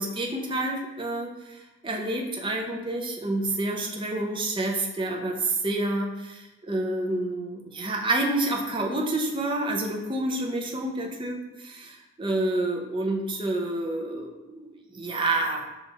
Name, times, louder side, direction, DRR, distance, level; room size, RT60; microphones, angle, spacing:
voice 1, 0.0-15.6, right 2 dB, 25° right, 0 dB, 0.5 m, -29 dB
5.2 x 2.4 x 4.0 m, 1.0 s
head